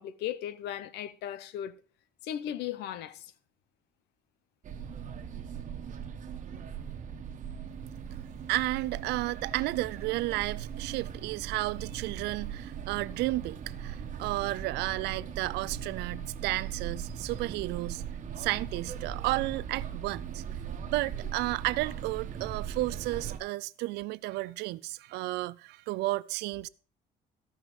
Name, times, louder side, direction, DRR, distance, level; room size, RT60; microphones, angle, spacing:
voice 1, 0.0-1.7 2.2-3.3, left 11 dB, 85° left, 0.8 m, -36 dB
sound 1, 4.6-23.4, right 8 dB, 45° right, 1.3 m, -39 dB
voice 2, 8.5-18.0 18.4-20.4 20.9-26.7, right 19 dB, 85° right, 0.4 m, -32 dB
14.5 x 5.7 x 4.9 m
cardioid pair, 110°, 17 cm